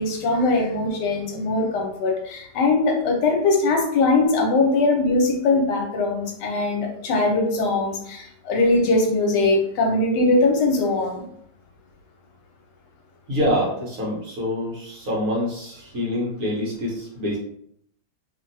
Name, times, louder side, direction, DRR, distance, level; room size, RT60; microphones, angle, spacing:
voice 1, 0.0-11.2, left 2 dB, 85° left, 1 dB, 1.3 m, -21 dB
voice 2, 13.3-17.4, equal, 60° right, -4 dB, 1.2 m, -26 dB
2.8 x 2.6 x 2.6 m, 0.69 s
omnidirectional pair, 1.8 m